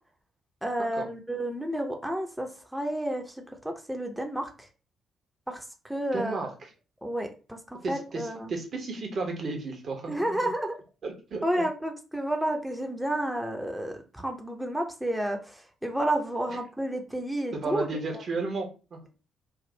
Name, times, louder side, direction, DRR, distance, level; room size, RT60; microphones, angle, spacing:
voice 1, 0.6-4.7 5.5-6.4 7.0-7.6 7.9-8.5 10.1-10.8 11.4-17.9, right 1 dB, 5° right, 3 dB, 0.9 m, -31 dB
voice 2, 6.1-6.7 7.8-10.5 11.0-11.4 17.5-19.0, right 3 dB, 45° right, 2 dB, 1.1 m, -33 dB
3.4 x 2.5 x 4.0 m, 0.33 s
figure-of-eight pair, 40°, 0 cm